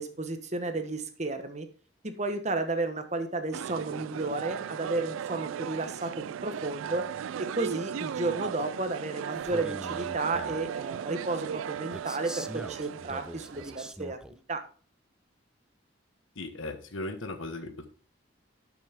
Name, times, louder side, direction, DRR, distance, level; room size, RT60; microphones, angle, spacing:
voice 1, 0.0-1.7 2.0-7.1 7.4-14.6, right 2 dB, 35° right, 8 dB, 1.1 m, -33 dB
sound 1, 3.5-13.9, right 8 dB, 90° right, 0.3 m, -37 dB
Male speech man speaking, 9.4-10.7 11.9-14.4, right 1 dB, 5° right, 0.3 m, -43 dB
voice 2, 16.3-17.9, left 2 dB, 85° left, 7 dB, 1.3 m, -37 dB
12.0 x 6.1 x 3.6 m, 0.40 s
head